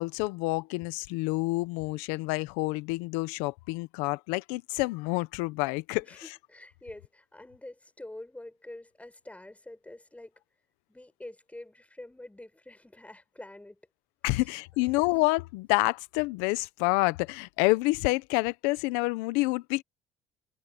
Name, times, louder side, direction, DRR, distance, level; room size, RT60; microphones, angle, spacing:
voice 1, 0.0-6.0 14.2-19.8, left 23 dB, 85° left, 1.1 m, -28 dB
voice 2, 6.0-10.3 10.9-13.8 14.3-14.5 14.8-15.0, left 1 dB, 10° left, 7.5 m, -47 dB
supercardioid pair, 65°, 13 cm